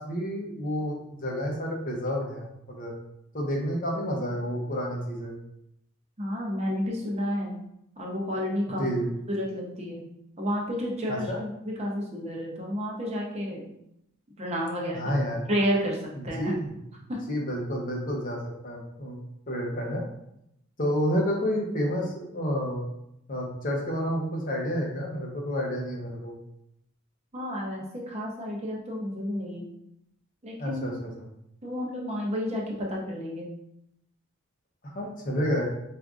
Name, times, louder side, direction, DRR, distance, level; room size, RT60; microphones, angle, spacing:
voice 1, 0.0-2.9 3.3-5.3 8.8-9.1 11.1-11.4 14.9-15.4 16.1-16.7 17.3-19.2 19.5-20.0 20.8-22.8 23.3-26.3 30.6-31.2 34.9-35.6, equal, 35° left, -1 dB, 0.7 m, -30 dB
voice 2, 6.2-7.6 8.0-8.8 9.3-10.0 10.4-13.6 14.4-15.1 15.5-16.0 16.2-16.5 17.1-17.2 27.3-29.7 30.4-30.8 31.6-33.5, equal, 30° right, -2 dB, 0.7 m, -31 dB
4.7 x 2.5 x 2.4 m, 0.80 s
head